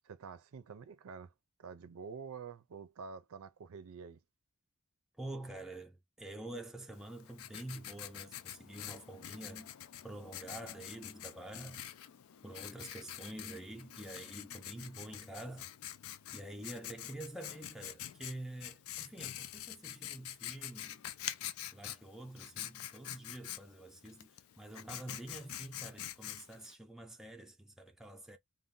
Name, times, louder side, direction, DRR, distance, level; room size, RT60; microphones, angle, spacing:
voice 1, 0.0-1.3 1.6-4.2, right 5 dB, 80° right, 0.5 m, -48 dB
voice 2, 5.2-9.7 10.0-11.9 12.4-15.7 16.3-21.0 21.7-28.4, right 1 dB, ahead, 0.4 m, -47 dB
Writing, 6.9-26.7, left 12 dB, 80° left, 0.4 m, -46 dB
2.6 x 2.1 x 3.5 m
head